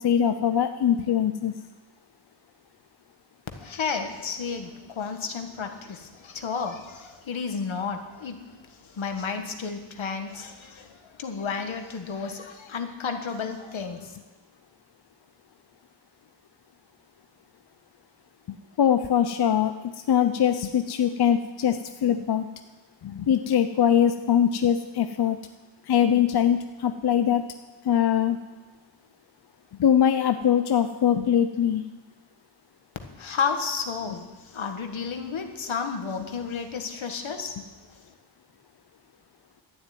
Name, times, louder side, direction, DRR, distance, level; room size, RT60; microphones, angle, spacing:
voice 1, 0.0-1.5 18.8-22.5 23.0-25.4 25.9-27.4 27.8-28.4 29.8-31.8, left 9 dB, 55° left, 8 dB, 0.6 m, -22 dB
voice 2, 3.5-8.4 8.9-10.9 11.2-14.1 33.2-37.5, left 5 dB, 75° left, 5 dB, 1.6 m, -32 dB
12.5 x 7.5 x 9.3 m, 1.2 s
wide cardioid pair, 150°, 47 cm